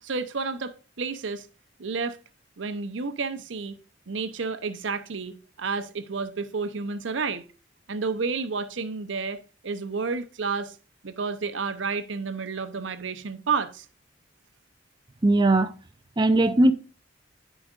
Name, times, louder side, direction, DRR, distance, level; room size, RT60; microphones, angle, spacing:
voice 1, 0.0-1.5 1.8-2.2 2.6-3.8 4.1-7.4 7.9-10.8 11.0-13.9, right 4 dB, 80° right, 0.7 m, -30 dB
voice 2, 15.2-15.7 16.2-16.7, right 2 dB, 25° right, 0.5 m, -19 dB
12.5 x 5.0 x 2.5 m
head